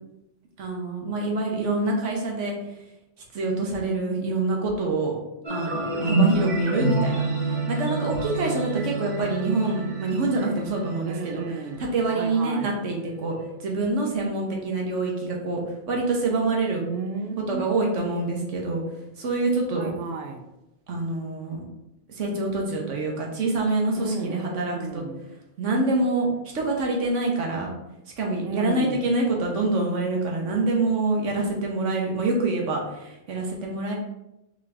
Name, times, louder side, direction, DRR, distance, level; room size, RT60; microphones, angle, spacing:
voice 1, 0.6-2.5 3.3-5.2 5.5-11.4 11.8-13.3 13.6-15.6 15.9-16.8 17.5-18.8 19.2-19.9 20.9-21.6 22.1-25.0 25.6-26.3 26.5-27.7 28.2-34.0, right 2 dB, 80° right, 0 dB, 1.3 m, -26 dB
sound 1, 5.4-12.5, right 2 dB, 40° right, 0.9 m, -27 dB
voice 2, 11.0-12.7 16.8-17.7 19.8-20.4 24.0-25.2 28.4-29.1, right 4 dB, 60° right, 5 dB, 0.7 m, -33 dB
3.7 x 3.6 x 3.3 m, 0.91 s
omnidirectional pair, 1.2 m